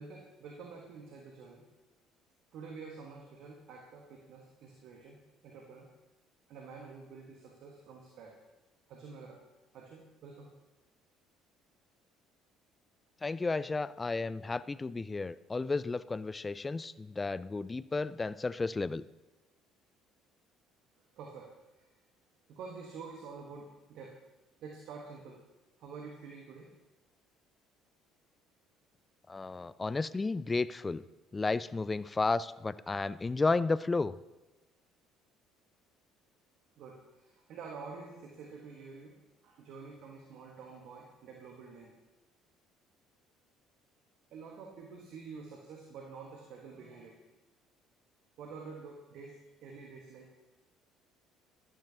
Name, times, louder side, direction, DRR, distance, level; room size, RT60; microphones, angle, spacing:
voice 1, 0.0-1.7 2.5-5.9 6.5-8.4 8.9-9.4 9.7-10.5 21.0-21.9 22.5-24.2 24.6-25.4 25.8-26.7 36.8-42.0 44.3-47.2 48.4-50.3, right 4 dB, 55° right, 1 dB, 1.2 m, -48 dB
voice 2, 13.2-19.0 29.3-31.0 31.3-34.1, left 3 dB, 20° left, 17 dB, 0.4 m, -33 dB
14.0 x 11.5 x 2.8 m, 1.1 s
figure-of-eight pair, 55°, 0 cm